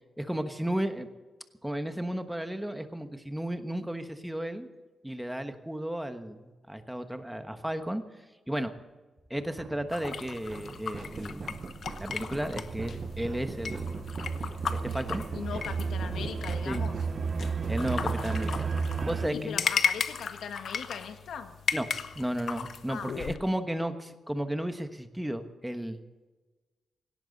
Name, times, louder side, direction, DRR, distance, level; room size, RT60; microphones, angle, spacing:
voice 1, 0.2-1.1 1.6-4.7 5.0-8.0 8.5-8.7 9.3-11.6 12.0-14.1 14.8-15.2 15.5-15.6 16.7-16.9 17.7-18.7 19.0-19.5 21.7-21.9 22.1-26.0, right 1 dB, 5° right, 8 dB, 1.2 m, -34 dB
sound 1, 9.4-19.3, right 5 dB, 40° right, 0.7 m, -34 dB
sound 2, 9.9-23.4, left 6 dB, 60° left, 0.9 m, -36 dB
voice 2, 15.3-16.9 19.3-21.5 22.9-23.2, left 7 dB, 85° left, 7 dB, 1.6 m, -39 dB
18.0 x 17.5 x 4.1 m, 1.3 s
wide cardioid pair, 125°, 0 cm